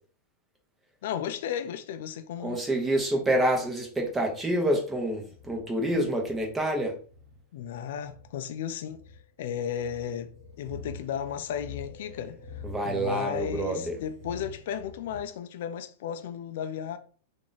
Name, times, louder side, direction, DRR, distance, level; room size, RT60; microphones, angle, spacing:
voice 1, 1.0-2.6 7.5-9.0 9.4-10.3 10.6-17.0, left 9 dB, 70° left, 0.4 m, -34 dB
voice 2, 2.4-7.0 12.6-14.0, right 1 dB, 10° right, 1.0 m, -27 dB
sound 1, 5.3-15.2, left 3 dB, 75° right, 0.9 m, -46 dB
2.9 x 2.5 x 4.0 m
hypercardioid pair, 130°, 0 cm